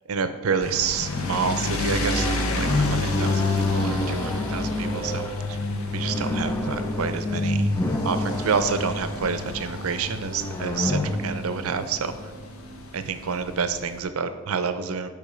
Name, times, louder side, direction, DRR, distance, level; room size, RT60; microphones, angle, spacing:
voice 1, 0.1-5.2 5.9-7.7 8.0-12.1 12.9-15.1, right 5 dB, 75° right, 11 dB, 0.6 m, -28 dB
sound 1, 0.6-14.0, left 2 dB, 80° left, 0.9 m, -33 dB
sound 2, 1.1-12.8, left 2 dB, 10° left, 0.5 m, -28 dB
8.6 x 3.5 x 5.0 m, 1.2 s
head